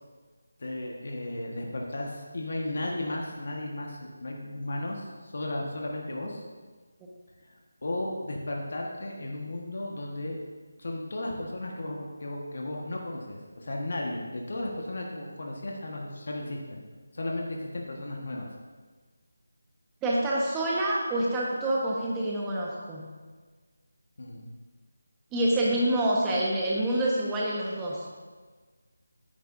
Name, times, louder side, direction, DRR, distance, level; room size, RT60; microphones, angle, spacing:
voice 1, 0.6-6.4 7.4-10.4 10.8-16.8 17.1-18.5 24.2-24.5, left 1 dB, 55° left, -1 dB, 1.4 m, -35 dB
voice 2, 20.0-23.0 25.3-28.0, right 1 dB, 10° right, -4 dB, 1.3 m, -27 dB
10.0 x 9.5 x 2.7 m, 1.4 s
figure-of-eight pair, 165°, 0 cm